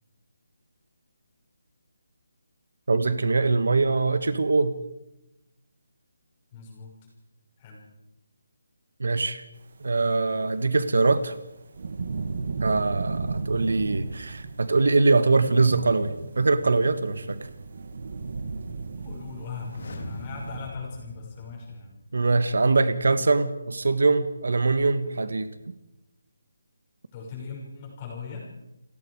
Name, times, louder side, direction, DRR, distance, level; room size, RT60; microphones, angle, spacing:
voice 1, 2.9-4.7 9.0-9.4 9.8-11.3 12.6-17.4 22.1-25.5, right 3 dB, 65° right, 11 dB, 1.6 m, -23 dB
voice 2, 6.5-6.9 7.6-7.8 19.0-21.9 27.1-28.4, left 5 dB, 15° left, -2 dB, 5.9 m, -39 dB
sound 1, 10.2-20.7, right 4 dB, 45° right, 2.3 m, -35 dB
sound 2, 19.5-22.4 22.6-22.7, left 4 dB, 45° left, 3.0 m, -43 dB
29.5 x 19.0 x 4.9 m, 0.93 s
hypercardioid pair, 180°, 0 cm